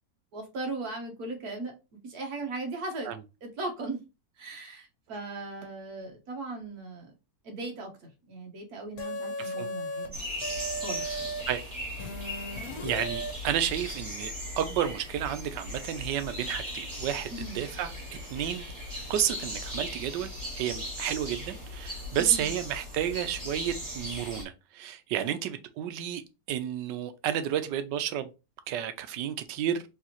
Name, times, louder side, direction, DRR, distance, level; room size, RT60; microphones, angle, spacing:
voice 1, 0.3-1.7 2.0-3.1 3.4-4.0 4.4-7.1 7.4-10.2 10.8-11.3 17.3-17.6 22.2-22.5 25.2-25.3, right 2 dB, 60° right, 1.6 m, -38 dB
sound 1, 9.0-10.1 10.4-11.4 12.0-13.3, equal, 60° left, 1.3 m, -36 dB
sound 2, 10.1-24.4, left 1 dB, 10° right, 1.8 m, -38 dB
voice 2, 12.8-17.3 17.5-17.9 18.3-18.7 19.1-26.2 26.5-28.3 28.7-29.8, right 10 dB, 85° right, 1.3 m, -31 dB
4.7 x 3.2 x 3.0 m
omnidirectional pair, 1.9 m